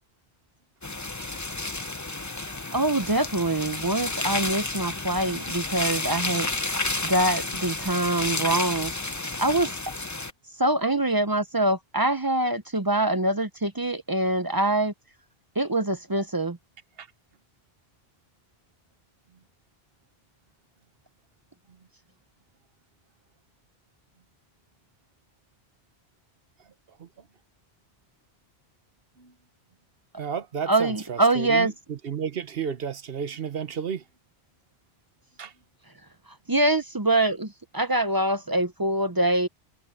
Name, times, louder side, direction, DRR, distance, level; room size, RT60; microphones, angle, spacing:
sound 1, 0.8-10.3, left 2 dB, 20° left, 0.8 m, -31 dB
voice 1, 2.7-6.5 7.0-8.9 9.4-9.9 10.6-14.9 15.6-16.6 30.7-31.7 36.5-39.5, right 2 dB, 25° right, 0.6 m, -24 dB
voice 2, 30.2-34.0 35.4-35.5, right 7 dB, 65° right, 1.2 m, -32 dB
omnidirectional pair, 1.1 m